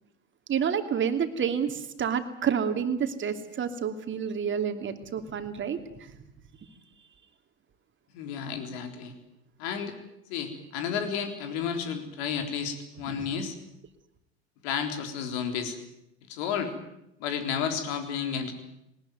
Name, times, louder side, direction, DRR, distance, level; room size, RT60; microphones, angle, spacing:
voice 1, 0.5-5.8 13.1-13.3, right 7 dB, 35° right, 7 dB, 2.8 m, -29 dB
voice 2, 8.1-9.1 9.6-9.9 10.3-13.6 14.6-15.8 16.3-16.7 17.2-18.5, left 7 dB, 65° left, 7 dB, 3.8 m, -32 dB
20.5 x 19.5 x 9.4 m, 0.83 s
hypercardioid pair, 75°, 34 cm